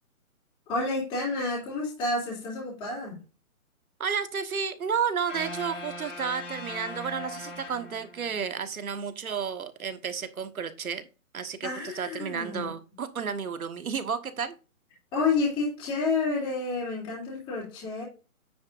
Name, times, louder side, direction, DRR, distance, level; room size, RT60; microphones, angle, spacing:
voice 1, 0.7-3.2 11.6-12.6 15.1-18.0, left 3 dB, 10° left, 3.1 m, -29 dB
voice 2, 4.0-11.0 11.3-11.7 11.9-14.5, right 6 dB, 70° right, 1.5 m, -32 dB
sound 1, 5.3-8.5, left 2 dB, 55° left, 3.3 m, -40 dB
9.5 x 8.5 x 2.6 m
hypercardioid pair, 170°, 43 cm